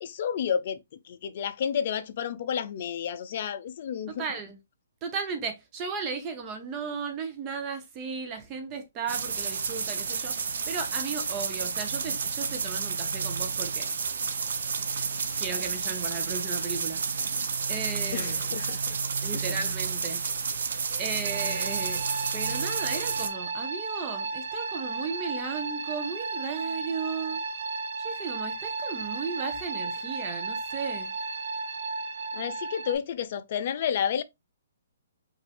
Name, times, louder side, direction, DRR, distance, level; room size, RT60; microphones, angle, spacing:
voice 1, 0.0-4.2 18.1-19.0 19.3-19.4 32.3-34.2, left 8 dB, 45° left, 0.6 m, -31 dB
voice 2, 4.2-4.6 5.0-10.4 10.7-13.9 14.9-17.0 17.7-18.4 19.2-20.2 21.0-22.1 22.3-27.4 28.0-31.1, right 5 dB, 20° right, 0.7 m, -35 dB
sound 1, 9.1-23.3, right 5 dB, 70° right, 0.8 m, -31 dB
sound 2, 21.2-33.0, right 3 dB, 50° right, 1.1 m, -34 dB
5.2 x 2.6 x 3.4 m
hypercardioid pair, 165°, 0 cm